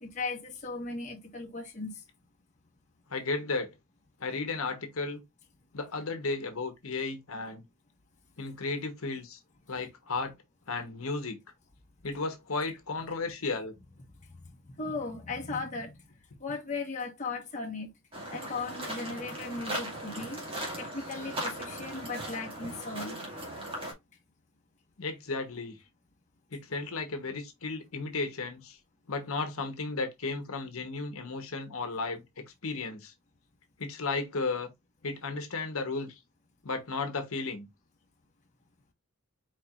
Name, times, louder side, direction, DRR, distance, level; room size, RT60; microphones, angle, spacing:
voice 1, 0.0-2.0 14.3-16.0 16.4-17.9 18.3-20.4 20.8-23.2, left 3 dB, 35° left, 1.2 m, -37 dB
voice 2, 3.1-3.7 4.2-5.2 5.7-7.6 8.4-9.4 9.7-10.3 10.7-11.4 12.0-13.7 25.0-25.8 26.5-28.8 29.1-33.1 33.8-34.7 35.0-36.2 36.6-37.7, left 3 dB, 80° left, 1.1 m, -34 dB
sound 1, 18.1-23.9, right 1 dB, 25° right, 2.1 m, -38 dB
4.6 x 4.5 x 2.5 m
head